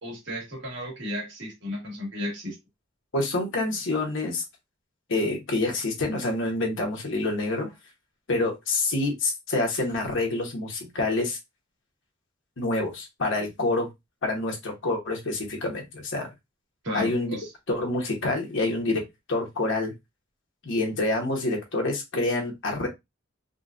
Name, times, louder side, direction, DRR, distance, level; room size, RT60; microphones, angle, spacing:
voice 1, 0.0-2.5 16.8-17.5, equal, 60° right, -1 dB, 1.7 m, -34 dB
voice 2, 3.1-4.4 5.1-7.7 8.3-11.4 12.6-13.9 14.2-16.3 16.9-17.4 17.7-19.0 19.3-19.9 20.6-22.9, left 2 dB, 65° left, 1 dB, 1.0 m, -27 dB
3.8 x 2.3 x 2.4 m, 0.20 s
head